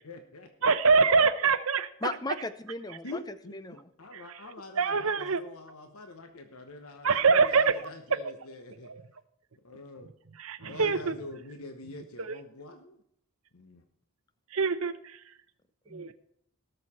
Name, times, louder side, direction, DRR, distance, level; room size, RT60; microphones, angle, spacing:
voice 1, 0.0-0.8 3.0-8.9 9.6-10.1 10.6-13.0 13.5-13.8, left 2 dB, 75° left, 6 dB, 1.0 m, -45 dB
voice 2, 0.6-1.9 4.8-5.4 7.0-7.7 8.9-9.0 10.4-11.1 14.5-14.9 15.9-16.1, right 5 dB, 75° right, 12 dB, 0.8 m, -24 dB
voice 3, 2.0-3.2 3.5-3.9 15.9-16.1, left 3 dB, 15° left, 12 dB, 0.6 m, -36 dB
18.0 x 6.6 x 4.3 m, 0.70 s
head